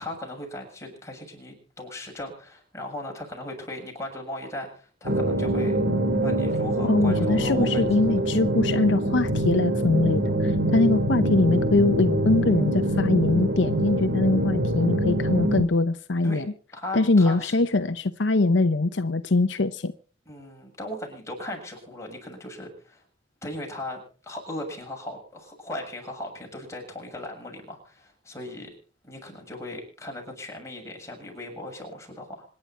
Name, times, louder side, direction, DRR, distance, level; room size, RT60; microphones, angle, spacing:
voice 1, 0.0-5.8 6.2-7.9 16.2-16.5 16.7-17.6 20.3-23.0 23.4-28.7 29.0-32.4, left 1 dB, 15° left, 7.1 m, -37 dB
sound 1, 5.1-15.6, right 1 dB, 60° right, 2.7 m, -24 dB
voice 2, 6.8-16.5 16.9-19.9, left 2 dB, 65° left, 0.8 m, -22 dB
26.0 x 11.0 x 4.4 m
head